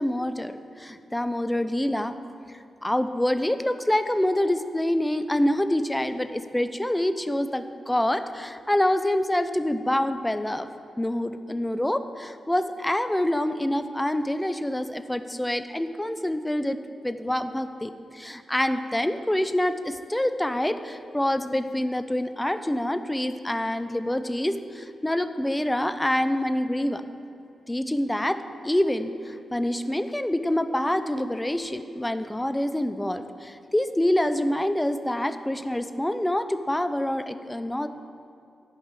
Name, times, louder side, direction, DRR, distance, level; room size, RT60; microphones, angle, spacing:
voice 1, 0.0-2.2 2.8-10.7 11.0-16.8 17.0-27.0 27.7-28.4 28.6-37.9, left 1 dB, 15° left, 10 dB, 0.7 m, -26 dB
11.5 x 5.3 x 7.6 m, 2.6 s
supercardioid pair, 45°, 0 cm